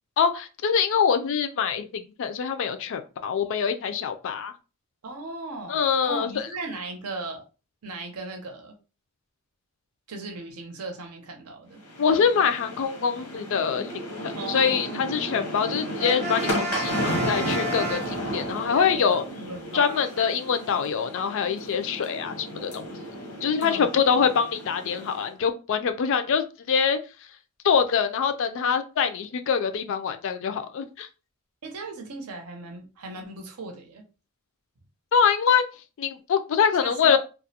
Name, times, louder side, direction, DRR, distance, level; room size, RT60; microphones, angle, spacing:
voice 1, 0.2-4.5 5.7-6.3 12.0-13.9 14.2-19.2 19.7-22.8 23.4-27.0 27.6-31.1 35.1-35.6 36.0-37.2, left 6 dB, 60° left, 0.3 m, -24 dB
voice 2, 5.0-7.4 7.8-8.7 10.1-11.8 14.4-15.0 18.7-20.2 23.6-24.0 31.6-34.0 36.8-37.2, right 2 dB, 90° right, 0.6 m, -37 dB
sound 1, 11.8-25.3, equal, 85° left, 0.8 m, -33 dB
Brass instrument, 16.0-18.7, right 1 dB, 30° right, 0.7 m, -32 dB
2.3 x 2.0 x 2.7 m
head